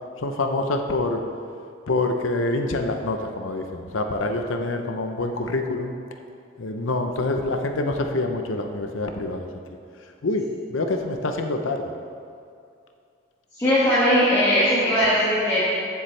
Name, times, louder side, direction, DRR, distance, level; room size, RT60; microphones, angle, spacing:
voice 1, 0.2-1.2 1.9-5.9 6.6-9.5 10.2-11.9, left 2 dB, 80° left, 4 dB, 0.7 m, -26 dB
voice 2, 13.5-15.7, equal, 15° left, -10 dB, 1.9 m, -19 dB
14.5 x 7.1 x 3.2 m, 2.4 s
head